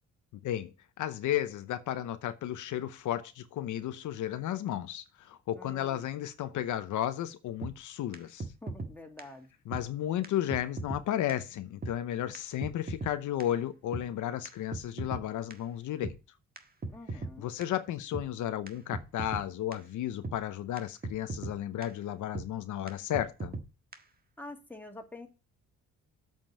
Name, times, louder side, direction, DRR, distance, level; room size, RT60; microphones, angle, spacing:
voice 1, 0.4-8.5 9.7-16.1 17.4-23.5, left 12 dB, 80° left, 0.9 m, -33 dB
voice 2, 5.5-6.1 8.6-9.5 16.9-17.5 24.4-25.3, left 2 dB, 5° left, 2.3 m, -47 dB
sound 1, 7.6-7.7 8.1-8.2 8.4-8.9 9.2-9.3 9.7-9.8 10.2-10.3 10.5-11.0 11.3-11.4 11.8-11.9 12.3-12.4 12.6-13.1 13.4-13.5 13.9-14.0 14.5-15.2 15.5-15.6 16.0-16.2 16.6-16.7 16.8-17.3 17.6-17.7 18.1-18.3 18.7-18.8 18.9-19.4 19.7-19.8 20.2-20.4 20.8-20.9 21.0-21.5 21.8-21.9 22.4-22.5 22.9-23.0 23.1-23.7 23.9-24.0, right 3 dB, 30° right, 1.6 m, -37 dB
7.8 x 5.4 x 7.4 m
cardioid pair, 90°, 30 cm